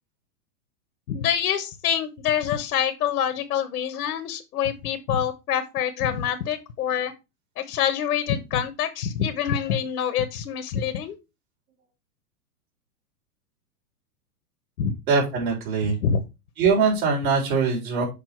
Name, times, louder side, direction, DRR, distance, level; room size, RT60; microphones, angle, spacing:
voice 1, 1.1-7.1 7.6-11.2 14.8-15.0 15.8-16.2, left 8 dB, 80° left, 8 dB, 1.4 m, -26 dB
voice 2, 15.1-16.0 16.6-18.0, right 5 dB, 60° right, -1 dB, 4.3 m, -22 dB
6.9 x 5.2 x 4.5 m, 0.26 s
supercardioid pair, 150°, 47 cm